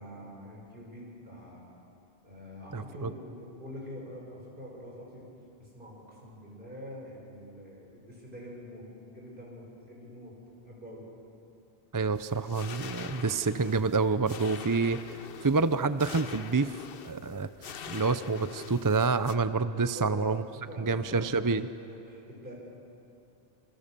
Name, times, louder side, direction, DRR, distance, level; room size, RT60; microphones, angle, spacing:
voice 1, 0.0-1.6 2.2-5.3 5.6-10.4 10.7-11.0 19.8-21.5 21.8-22.5, equal, 50° right, -3 dB, 7.2 m, -45 dB
voice 2, 2.7-3.1 11.9-20.4 20.8-21.7, right 4 dB, 30° right, 12 dB, 0.4 m, -28 dB
sound 1, 12.1-19.4, left 7 dB, 60° left, 0.9 m, -44 dB
26.5 x 26.5 x 6.8 m, 2.6 s
omnidirectional pair, 1.2 m